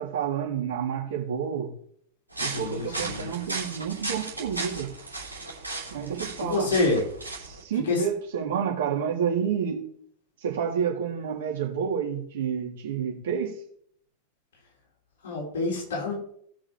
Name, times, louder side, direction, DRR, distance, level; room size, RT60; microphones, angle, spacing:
voice 1, 0.0-1.7 2.4-4.9 5.9-6.7 7.4-9.8 10.4-13.6, right 7 dB, 55° right, 3.6 m, -29 dB
sound 1, 2.3-7.6, right 3 dB, 85° right, 2.9 m, -36 dB
voice 2, 2.4-3.3 6.4-7.0 7.9-8.0 15.2-16.1, left 3 dB, 60° left, 4.2 m, -27 dB
18.0 x 6.3 x 3.2 m
figure-of-eight pair, 90°, 0 cm